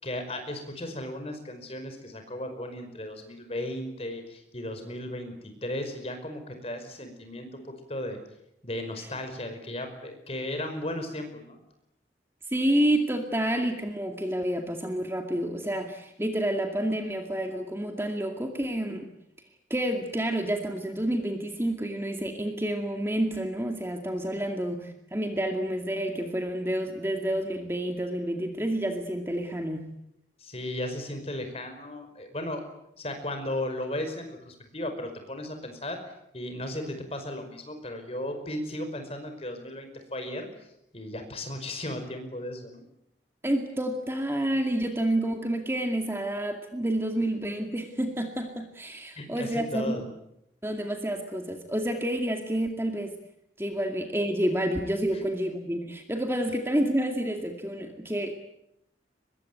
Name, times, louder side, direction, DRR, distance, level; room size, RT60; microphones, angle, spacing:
voice 1, 0.0-8.2 8.6-11.6 30.4-32.6 33.0-40.5 40.9-42.8 49.1-50.1, left 1 dB, 35° left, 6 dB, 5.2 m, -35 dB
voice 2, 12.5-19.1 19.7-29.9 43.4-50.0 50.6-53.1 53.6-58.4, right 1 dB, 15° right, 4 dB, 2.2 m, -29 dB
24.0 x 22.0 x 9.4 m, 0.79 s
head